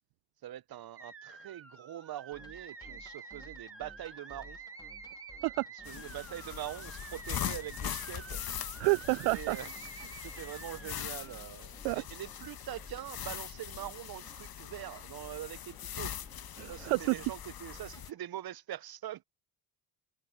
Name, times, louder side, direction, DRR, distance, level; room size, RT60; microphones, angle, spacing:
voice 1, 0.4-4.6 5.9-8.4 9.3-9.7 10.0-16.1 16.7-19.2, right 12 dB, 50° right, 1.0 m, -43 dB
sound 1, 1.0-11.7, right 5 dB, 25° right, 1.9 m, -49 dB
sound 2, 2.3-18.2, left 1 dB, 10° left, 2.8 m, -56 dB
sound 3, 5.8-18.1, left 10 dB, 45° left, 1.5 m, -42 dB
voice 2, 8.8-9.6 11.8-12.0 16.6-17.2, right 27 dB, 70° right, 0.6 m, -29 dB
open air
hypercardioid pair, 60°, 49 cm